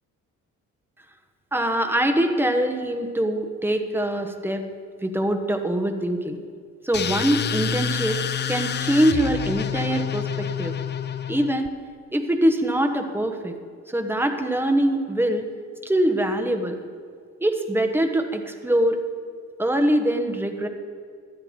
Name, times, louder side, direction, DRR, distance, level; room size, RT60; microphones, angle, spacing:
voice 1, 1.5-4.7 5.0-6.4 6.8-8.2 8.5-10.7 11.3-11.7 12.1-13.6 13.9-15.5 15.8-16.8 17.4-19.0 19.6-20.7, right 1 dB, 5° right, 5 dB, 1.1 m, -23 dB
sound 1, 6.9-11.7, left 8 dB, 35° left, 0.5 m, -28 dB
12.5 x 10.0 x 4.4 m, 2.1 s
cardioid pair, 90°, 30 cm